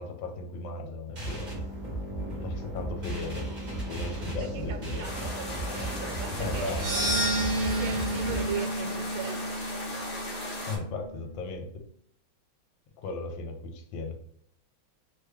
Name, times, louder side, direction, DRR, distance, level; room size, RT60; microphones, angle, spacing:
voice 1, 0.0-1.5 2.4-3.5 3.9-5.1 6.4-6.8 10.6-11.8 13.0-14.2, left 3 dB, 80° left, 4 dB, 1.3 m, -36 dB
sound 1, 1.2-8.5, right 1 dB, 35° right, 0.8 m, -35 dB
voice 2, 4.2-6.7 7.6-9.5, right 7 dB, 85° right, 6 dB, 1.4 m, -38 dB
sound 2, 5.0-10.8, left 1 dB, 50° left, 0.8 m, -38 dB
sound 3, 6.7-11.0, right 1 dB, 65° right, 0.6 m, -31 dB
3.3 x 2.2 x 3.4 m, 0.68 s
omnidirectional pair, 2.2 m